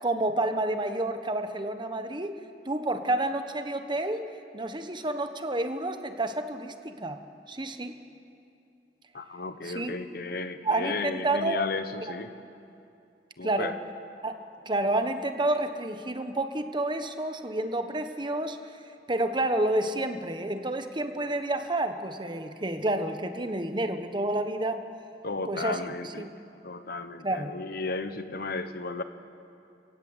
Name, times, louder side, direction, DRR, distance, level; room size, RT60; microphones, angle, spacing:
voice 1, 0.0-2.3 2.6-7.2 7.5-8.0 9.6-10.0 10.6-11.6 13.4-13.8 14.2-14.3 14.6-18.6 19.1-24.8 25.5-26.3 27.2-27.5, right 1 dB, 25° right, 8 dB, 1.3 m, -29 dB
voice 2, 9.1-12.3 13.4-13.7 25.2-26.3 26.6-29.0, left 3 dB, 60° left, 10 dB, 1.1 m, -34 dB
29.5 x 17.5 x 8.1 m, 2.6 s
head